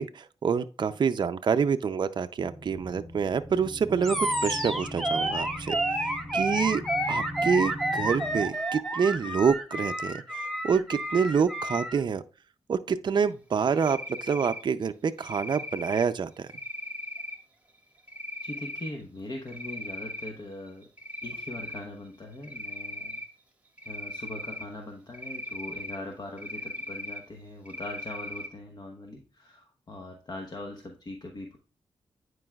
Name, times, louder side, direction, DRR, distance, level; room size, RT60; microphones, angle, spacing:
voice 1, 0.0-4.2 4.4-5.8 6.0-12.2 12.7-16.5, right 6 dB, 50° right, 0.4 m, -27 dB
sound 1, 2.4-8.5, equal, 30° left, 1.4 m, -41 dB
Animal, 4.0-12.0, right 1 dB, ahead, 1.1 m, -30 dB
Cricket, 13.7-14.6 15.2-16.0 16.5-17.4 18.1-18.9 19.3-20.3 20.7-21.8 22.4-23.3 23.8-24.6 25.1-26.0 26.4-27.2 27.7-28.5, left 1 dB, 15° right, 1.4 m, -38 dB
voice 2, 18.4-20.9 21.2-23.2 23.8-31.6, left 2 dB, 45° left, 1.0 m, -41 dB
9.7 x 4.7 x 2.3 m
cardioid pair, 70°, 10 cm